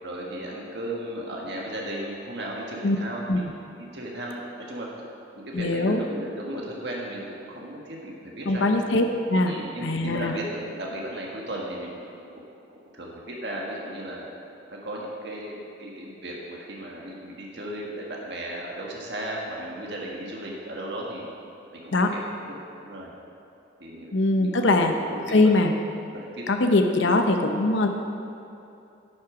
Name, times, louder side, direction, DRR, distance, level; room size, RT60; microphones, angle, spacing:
voice 1, 0.0-3.5 3.8-4.4 4.7-4.9 5.5-8.7 9.5-12.1 12.9-14.3 14.7-21.3 21.7-22.3 22.8-23.1 23.8-24.7 25.1-25.5 26.1-26.6 27.0-27.1, right 1 dB, 55° right, -2 dB, 1.7 m, -35 dB
voice 2, 5.5-6.0 8.5-9.5 9.8-10.3 21.9-22.1 24.1-24.9 25.3-25.7 26.5-27.9, left 2 dB, 70° left, 5 dB, 0.7 m, -21 dB
10.5 x 8.7 x 5.0 m, 2.8 s
head